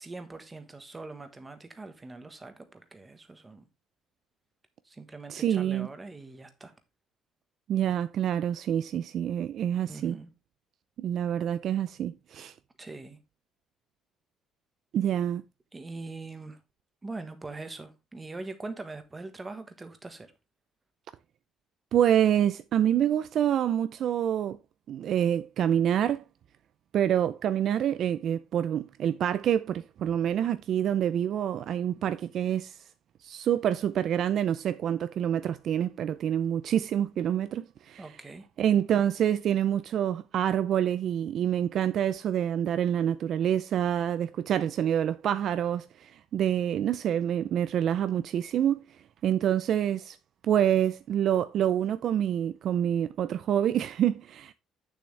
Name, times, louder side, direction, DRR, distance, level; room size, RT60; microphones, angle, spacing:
voice 1, 0.0-3.7 4.8-6.7 9.9-10.3 12.8-13.2 15.7-16.6 17.0-20.3 38.0-38.5, right 3 dB, 15° right, 1.3 m, -42 dB
voice 2, 5.3-5.9 7.7-10.2 11.0-12.5 14.9-15.4 21.9-24.6 24.9-26.2 26.9-32.8 33.2-38.0 38.6-48.8 49.2-50.2 50.4-54.5, right 10 dB, 45° right, 0.4 m, -27 dB
8.7 x 7.0 x 3.2 m
cardioid pair, 165°, 0 cm